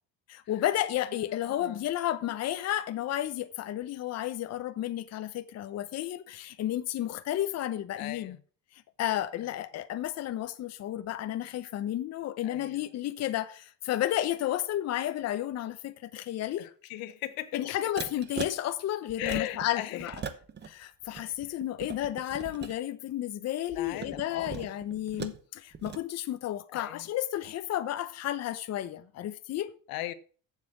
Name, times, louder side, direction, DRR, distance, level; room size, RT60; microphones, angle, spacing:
voice 1, 0.3-8.4 8.7-16.7 17.5-20.1 20.6-29.7, left 12 dB, 50° left, 0.8 m, -32 dB
voice 2, 1.3-1.9 8.0-8.4 12.4-12.9 16.6-17.6 19.2-20.4 21.2-21.6 23.7-24.7 26.7-27.1 29.9-30.1, left 15 dB, 90° left, 1.0 m, -39 dB
sound 1, 18.0-18.5 19.1-19.7 20.0-20.7 21.0-22.8 23.7-25.4 25.7-26.0, right 7 dB, 30° right, 1.0 m, -39 dB
7.5 x 7.3 x 7.5 m
cardioid pair, 145°, 34 cm